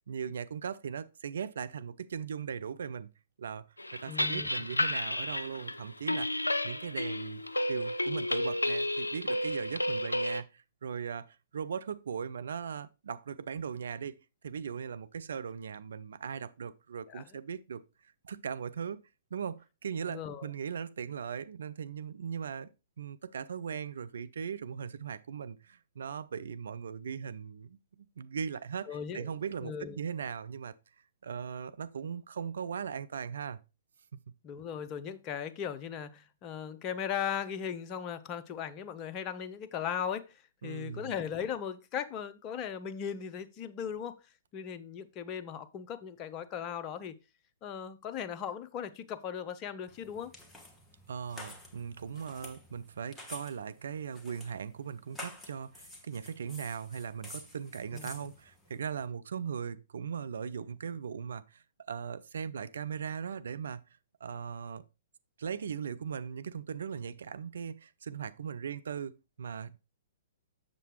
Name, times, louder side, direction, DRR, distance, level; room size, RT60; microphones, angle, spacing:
voice 1, 0.1-3.1 3.4-3.7 3.9-7.4 7.7-14.2 14.4-17.8 18.2-19.0 19.3-22.7 23.0-30.7 31.2-33.6 40.6-41.2 51.1-63.8 64.2-64.8 65.4-69.8, right 7 dB, 65° right, 0.5 m, -39 dB
sound 1, 3.8-10.4, left 1 dB, 85° left, 0.5 m, -32 dB
voice 2, 4.1-4.5 17.1-17.2 20.1-20.5 28.9-29.3 29.6-30.0 34.4-44.2 44.5-47.2 47.6-50.3 57.9-58.3, left 8 dB, 30° left, 0.6 m, -38 dB
sound 2, 49.9-59.1, left 2 dB, 10° left, 1.2 m, -50 dB
7.5 x 6.7 x 3.1 m
figure-of-eight pair, 115°, 0 cm